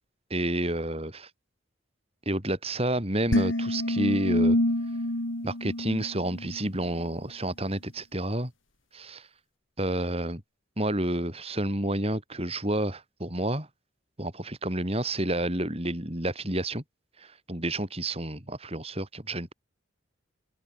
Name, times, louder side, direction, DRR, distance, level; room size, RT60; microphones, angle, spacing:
voice 1, 0.3-1.3 2.3-4.6 5.4-8.5 8.9-9.3 9.8-10.4 10.8-13.7 14.2-16.8 17.2-19.5, right 1 dB, 30° right, 5.2 m, -30 dB
sound 1, 3.3-6.7, left 1 dB, 80° left, 3.9 m, -27 dB
open air
head